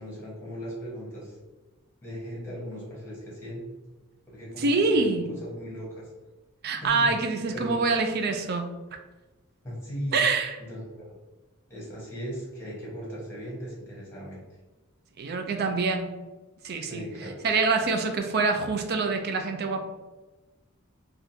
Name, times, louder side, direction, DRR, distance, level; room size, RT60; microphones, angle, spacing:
voice 1, 0.0-1.4 2.0-3.7 4.3-5.1 5.4-6.1 6.8-7.1 7.5-7.8 9.6-10.2 10.7-11.1 11.7-14.4 16.8-17.4, equal, 10° left, -5 dB, 1.2 m, -38 dB
voice 2, 4.6-5.3 6.6-8.7 10.1-10.6 15.2-16.2 16.6-17.0 17.4-19.8, right 4 dB, 50° right, 5 dB, 0.4 m, -25 dB
3.5 x 2.4 x 2.7 m, 1.2 s
head